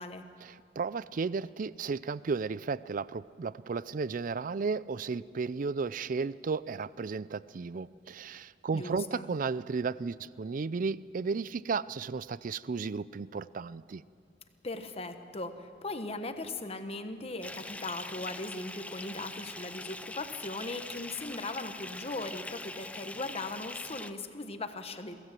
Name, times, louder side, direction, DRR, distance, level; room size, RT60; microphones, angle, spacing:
voice 1, 0.4-14.0, right 4 dB, 45° right, 18 dB, 0.4 m, -34 dB
voice 2, 8.7-9.3 14.6-25.1, left 2 dB, 30° left, 8 dB, 1.2 m, -39 dB
Bathtub (filling or washing) / Fill (with liquid), 17.4-24.1, left 2 dB, 5° left, 0.5 m, -43 dB
23.0 x 16.0 x 7.5 m, 2.2 s
head